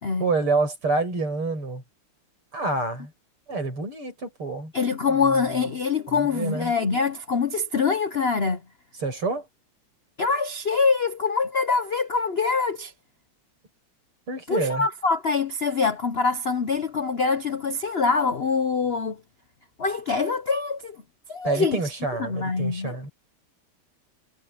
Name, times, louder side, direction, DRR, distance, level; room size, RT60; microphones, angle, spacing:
voice 1, 0.2-1.8 2.5-3.1 3.5-4.7 5.2-5.4 6.1-6.7 9.0-9.5 14.3-14.9 21.4-23.1, right 3 dB, 75° right, 8.9 m, -27 dB
voice 2, 4.7-8.6 10.2-12.9 14.5-19.2 19.8-21.0 21.3-21.8 22.2-23.1, left 4 dB, 75° left, 0.5 m, -24 dB
omnidirectional pair, 2.4 m